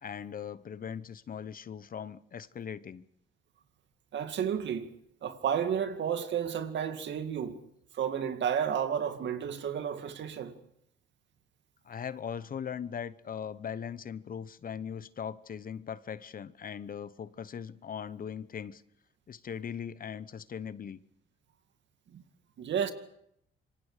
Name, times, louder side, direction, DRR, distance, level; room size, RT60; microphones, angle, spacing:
voice 1, 0.0-3.0 11.8-18.8 19.3-21.0, left 7 dB, 45° left, 0.9 m, -40 dB
voice 2, 4.1-4.9 5.2-7.6 7.9-10.6 22.1-22.2 22.6-22.9, right 8 dB, 65° right, 2.2 m, -31 dB
26.5 x 24.0 x 5.0 m
cardioid pair, 90°, 20 cm